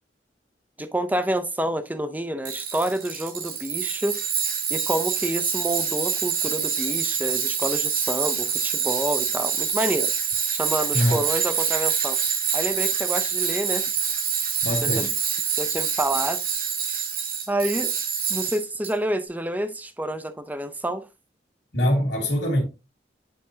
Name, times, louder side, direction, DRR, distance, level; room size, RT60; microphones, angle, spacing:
voice 1, 0.8-4.2 4.7-10.1 10.5-12.2 12.5-13.8 14.8-15.1 15.5-16.4 17.5-17.9 18.3-21.1, right 1 dB, 10° right, 0.5 m, -28 dB
Tools, 2.4-18.9, right 7 dB, 50° right, 1.2 m, -26 dB
voice 2, 14.6-15.1 21.7-22.6, equal, 70° left, 1.9 m, -23 dB
9.5 x 3.8 x 2.7 m
head